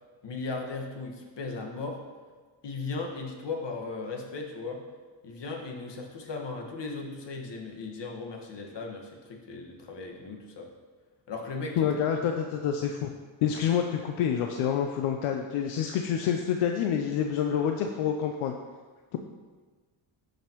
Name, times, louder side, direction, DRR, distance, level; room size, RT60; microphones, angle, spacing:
voice 1, 0.2-2.0 2.6-4.8 5.2-10.7 11.3-12.0, left 3 dB, 60° left, 1 dB, 1.6 m, -37 dB
voice 2, 11.8-13.1 13.4-18.5, left 8 dB, 85° left, 4 dB, 0.6 m, -27 dB
13.0 x 5.2 x 3.0 m, 1.4 s
cardioid pair, 75°, 48 cm